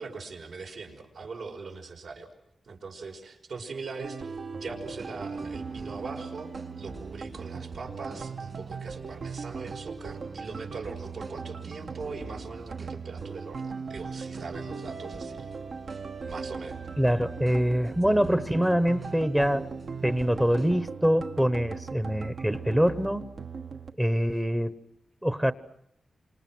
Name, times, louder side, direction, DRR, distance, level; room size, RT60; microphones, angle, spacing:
voice 1, 0.0-2.3 2.7-6.5 6.8-15.5 16.2-16.8, right 4 dB, 75° right, 1 dB, 5.4 m, -41 dB
sound 1, 4.0-23.9, right 5 dB, 60° right, 1.2 m, -39 dB
sound 2, 4.6-20.8, right 3 dB, 45° right, 2.8 m, -47 dB
voice 2, 17.0-19.7 20.0-23.2 24.0-24.8 25.2-25.5, equal, 10° right, 11 dB, 0.9 m, -24 dB
29.5 x 27.0 x 6.1 m, 0.74 s
wide cardioid pair, 155°, 0 cm